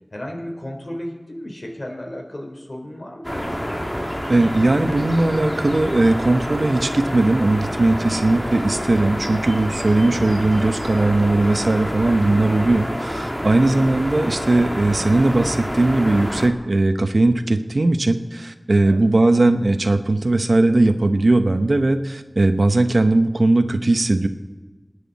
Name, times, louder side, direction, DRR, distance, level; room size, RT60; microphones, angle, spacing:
voice 1, 0.1-3.7 18.8-19.0, left 1 dB, 60° left, 1 dB, 4.1 m, -34 dB
sound 1, 3.2-16.5, equal, 10° left, 2.4 m, -27 dB
voice 2, 4.3-24.3, right 2 dB, 80° right, 8 dB, 1.0 m, -18 dB
27.5 x 10.0 x 4.2 m, 1.2 s
wide cardioid pair, 40°, 0 cm